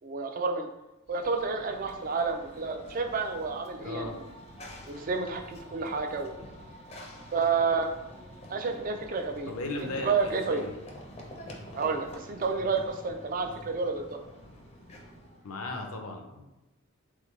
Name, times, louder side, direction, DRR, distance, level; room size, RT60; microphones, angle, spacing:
voice 1, 0.0-0.7 1.1-4.2 4.9-6.4 7.3-7.9 8.5-9.5 9.8-10.6 11.8-14.2, right 4 dB, 40° right, 5 dB, 0.4 m, -30 dB
Run / Train, 1.1-15.5, equal, 30° left, 0.5 m, -47 dB
voice 2, 3.8-4.2 9.5-10.7 15.4-16.6, left 2 dB, 75° left, 3 dB, 0.6 m, -37 dB
3.8 x 3.1 x 3.1 m, 0.96 s
head